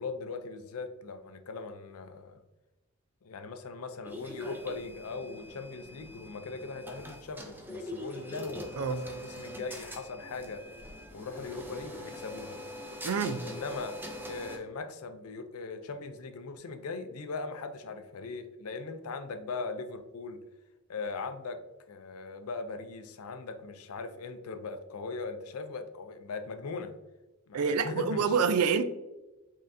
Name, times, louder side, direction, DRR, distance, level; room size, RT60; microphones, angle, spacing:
voice 1, 0.0-2.4 3.2-10.6 11.1-12.6 13.5-20.4 20.9-21.6 21.9-26.9 27.5-28.5, left 4 dB, 75° left, 0.5 m, -39 dB
sound 1, 4.0-14.6, left 1 dB, 10° right, 0.6 m, -43 dB
voice 2, 13.0-13.5 27.5-28.8, right 5 dB, 80° right, 0.4 m, -27 dB
5.4 x 3.7 x 2.6 m
head